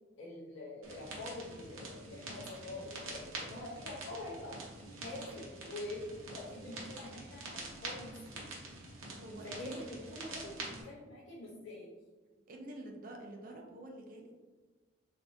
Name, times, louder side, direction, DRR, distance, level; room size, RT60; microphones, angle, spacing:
voice 1, 0.1-4.6 5.0-8.5 9.4-11.9, left 2 dB, 75° left, -6 dB, 0.6 m, -45 dB
sound 1, 0.8-10.8, right 2 dB, 85° right, 0.7 m, -46 dB
voice 2, 9.1-9.9 12.5-14.3, right 1 dB, 40° right, 1 dB, 0.4 m, -47 dB
3.4 x 2.5 x 2.5 m, 1.3 s
head